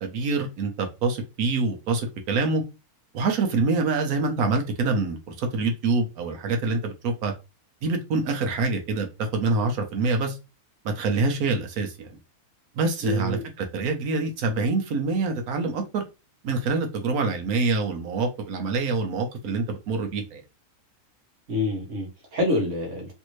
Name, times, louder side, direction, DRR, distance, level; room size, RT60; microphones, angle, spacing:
voice 1, 0.0-2.6 3.1-7.3 7.8-9.1 9.3-10.4 10.8-12.2 12.7-16.0 16.4-20.4, right 3 dB, 75° right, 1.2 m, -26 dB
voice 2, 13.0-13.4 21.5-23.1, left 1 dB, 55° right, 1.4 m, -27 dB
3.3 x 2.6 x 3.0 m
omnidirectional pair, 1.6 m